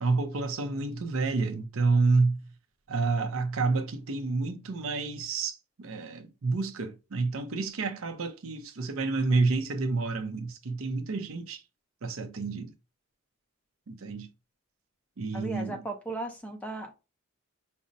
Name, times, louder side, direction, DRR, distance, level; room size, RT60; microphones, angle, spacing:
voice 1, 0.0-2.4 2.9-11.6 12.0-12.7 13.9-14.3 15.2-15.8, right 3 dB, 70° right, 0.6 m, -29 dB
voice 2, 15.3-16.9, right 2 dB, 5° left, 0.5 m, -36 dB
5.1 x 2.1 x 2.5 m
head